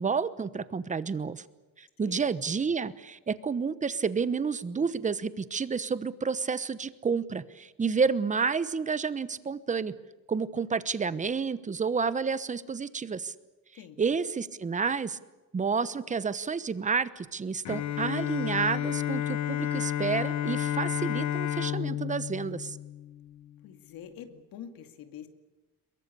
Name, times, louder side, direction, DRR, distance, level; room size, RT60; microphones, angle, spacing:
voice 1, 0.0-1.4 1.8-9.9 10.3-13.3 14.0-15.2 15.5-22.8, right 5 dB, 20° right, 15 dB, 1.0 m, -30 dB
voice 2, 13.7-14.2 23.6-25.3, left 9 dB, 75° left, 7 dB, 2.4 m, -46 dB
Bowed string instrument, 17.6-23.5, left 11 dB, 50° left, 0.9 m, -31 dB
22.5 x 22.5 x 8.5 m, 1.2 s
cardioid pair, 135°, 35 cm